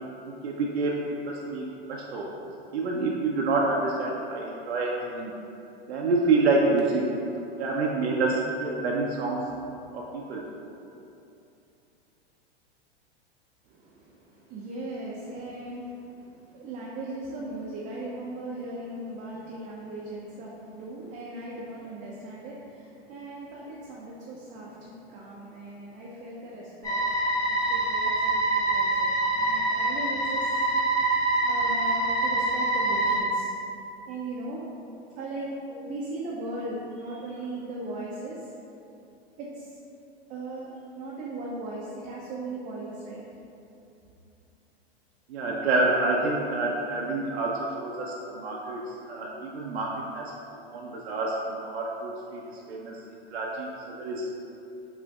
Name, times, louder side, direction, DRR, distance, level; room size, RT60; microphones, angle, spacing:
voice 1, 0.2-2.3 2.7-5.3 5.9-7.1 7.6-9.4 9.9-10.5 45.3-50.3 50.7-53.0 53.3-54.4, right 3 dB, 85° right, -3 dB, 0.5 m, -28 dB
voice 2, 13.6-27.0 27.5-30.5 31.4-33.5 34.1-34.6 35.1-38.5 39.4-39.8 40.3-40.7 41.0-43.2, right 2 dB, 25° right, -5 dB, 0.4 m, -38 dB
sound 1, 26.8-33.2, right 2 dB, 10° left, 0.7 m, -25 dB
4.9 x 2.5 x 2.3 m, 2.8 s
hypercardioid pair, 100°, 31 cm